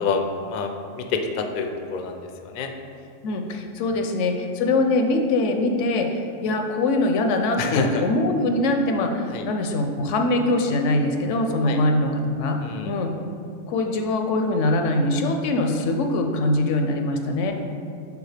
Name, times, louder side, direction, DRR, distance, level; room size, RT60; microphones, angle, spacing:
voice 1, 0.0-2.7 3.9-4.0 7.6-8.0 9.3-9.5 11.6-11.8 12.6-12.9, left 4 dB, 60° left, 5 dB, 0.5 m, -28 dB
voice 2, 3.2-12.6 12.8-13.1 13.7-17.5, left 2 dB, 80° left, 4 dB, 0.9 m, -23 dB
7.0 x 4.2 x 3.3 m, 2.5 s
omnidirectional pair, 1.3 m